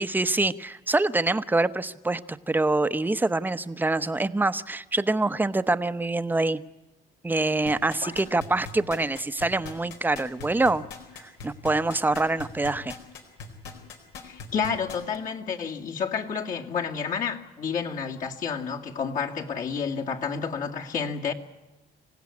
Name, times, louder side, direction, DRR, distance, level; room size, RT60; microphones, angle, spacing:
voice 1, 0.0-6.6 7.2-10.8 11.1-13.0, right 2 dB, 10° right, 13 dB, 0.8 m, -25 dB
sound 1, 7.7-15.2 15.6-15.7, left 4 dB, 90° left, 4.2 m, -40 dB
voice 2, 14.2-21.3, left 6 dB, 50° left, 0 dB, 2.2 m, -30 dB
26.5 x 16.5 x 9.6 m, 1.1 s
cardioid pair, 110°, 17 cm